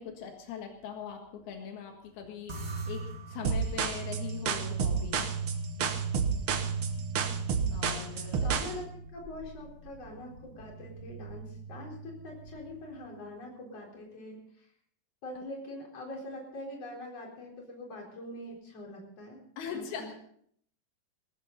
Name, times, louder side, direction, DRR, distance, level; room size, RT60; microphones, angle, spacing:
voice 1, 0.0-5.3 7.7-8.7 19.6-20.1, left 7 dB, 85° left, 3 dB, 3.7 m, -41 dB
sound 1, 2.5-13.1, right 4 dB, 40° right, 1.6 m, -38 dB
sound 2, 3.4-8.7, right 6 dB, 85° right, 1.1 m, -30 dB
voice 2, 8.4-14.7 15.2-19.4 19.7-20.1, left 1 dB, 40° left, -1 dB, 5.0 m, -43 dB
20.0 x 14.0 x 4.0 m, 0.64 s
omnidirectional pair, 4.3 m